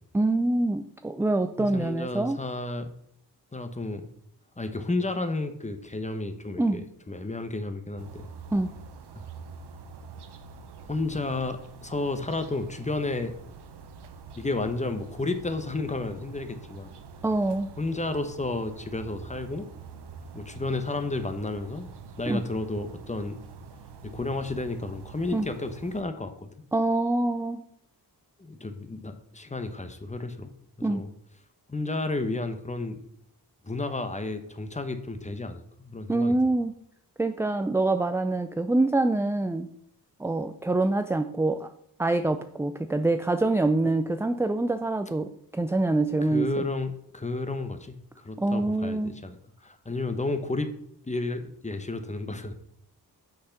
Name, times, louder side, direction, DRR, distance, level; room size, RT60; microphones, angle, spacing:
voice 1, 0.1-2.4 6.6-6.8 8.5-8.7 17.2-17.7 22.3-22.4 25.3-25.5 26.7-27.6 30.8-31.0 36.1-36.7 37.2-39.7 40.2-41.7 42.0-46.5 48.4-49.1, right 2 dB, 5° right, 8 dB, 0.4 m, -25 dB
voice 2, 1.6-2.9 3.5-4.1 4.6-8.3 10.9-13.3 14.4-16.9 17.8-19.7 20.3-21.9 22.2-23.4 24.0-26.5 28.4-30.5 30.8-31.1 31.7-33.0 33.6-36.4 46.2-50.7 51.1-52.6, left 2 dB, 20° left, 9 dB, 0.9 m, -32 dB
sound 1, 8.0-26.0, right 5 dB, 80° right, 0.8 m, -46 dB
6.4 x 5.7 x 5.8 m, 0.69 s
wide cardioid pair, 85°, 39 cm